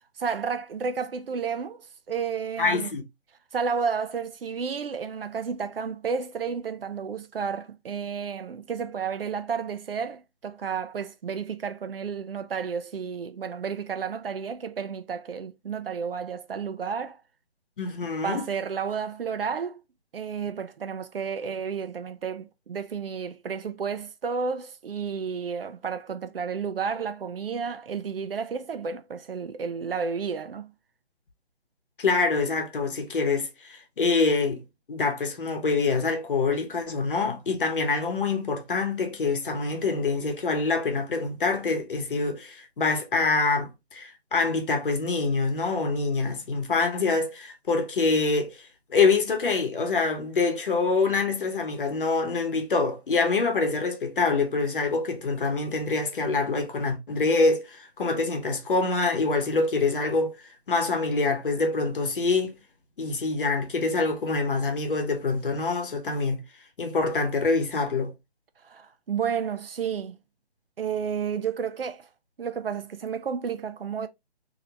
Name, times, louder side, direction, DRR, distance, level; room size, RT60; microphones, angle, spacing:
voice 1, 0.2-2.9 3.5-17.2 18.0-19.8 20.1-30.7 68.6-70.2 70.8-72.1 72.4-74.1, right 6 dB, 60° right, 0.5 m, -31 dB
voice 2, 2.6-3.0 17.8-18.5 32.0-34.6 34.9-48.6 48.9-60.3 60.7-62.6 63.0-66.4 66.8-68.1, left 3 dB, 55° left, 1.0 m, -25 dB
2.8 x 2.8 x 3.1 m
figure-of-eight pair, 160°, 32 cm